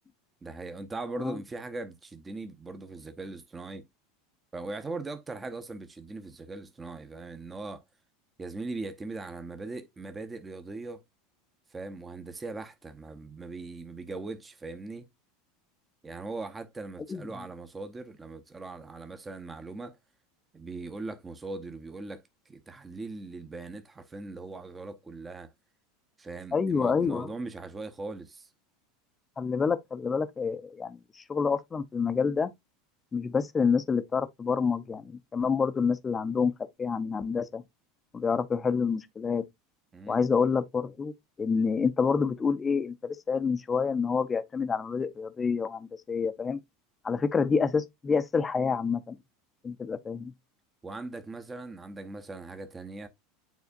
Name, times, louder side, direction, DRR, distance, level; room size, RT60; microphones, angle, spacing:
voice 1, 0.4-3.9 4.5-7.8 8.4-11.0 11.7-15.1 16.0-20.0 20.5-25.5 26.2-28.5 39.9-40.2 50.8-53.1, right 3 dB, 15° right, 0.9 m, -40 dB
voice 2, 26.5-27.3 29.4-32.5 33.1-36.5 36.8-37.6 38.1-39.4 40.1-46.6 47.0-49.2 49.6-50.3, left 5 dB, 20° left, 0.7 m, -28 dB
9.3 x 4.3 x 2.5 m
figure-of-eight pair, 80°, 0 cm